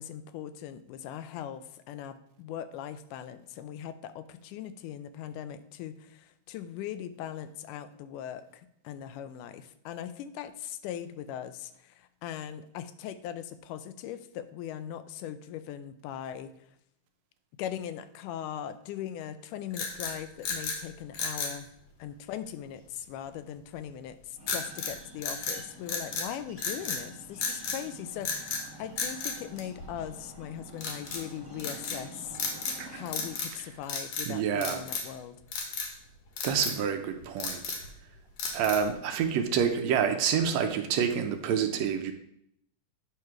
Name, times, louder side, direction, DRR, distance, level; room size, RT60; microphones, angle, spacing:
voice 1, 0.0-16.5 17.6-21.7 22.0-32.4 32.9-35.4, left 10 dB, 85° left, 12 dB, 2.1 m, -40 dB
sound 1, 19.7-20.8 21.1-21.6 24.5-24.9 25.2-26.3 26.6-27.0 27.4-27.8 28.2-28.6 29.0-30.1 30.8-31.2 31.6-32.0 32.3-32.8 33.1-33.6 33.8-34.3 34.6-35.1 35.5-35.9 36.4-36.8 37.2-37.9 38.4-38.9, left 4 dB, 60° left, 2.1 m, -34 dB
sound 2, 24.4-33.4, right 1 dB, 10° left, 1.1 m, -49 dB
voice 2, 34.3-34.8 36.4-37.8 38.5-42.1, right 7 dB, 75° right, 6 dB, 1.7 m, -28 dB
9.3 x 3.2 x 5.8 m, 0.73 s
omnidirectional pair, 3.6 m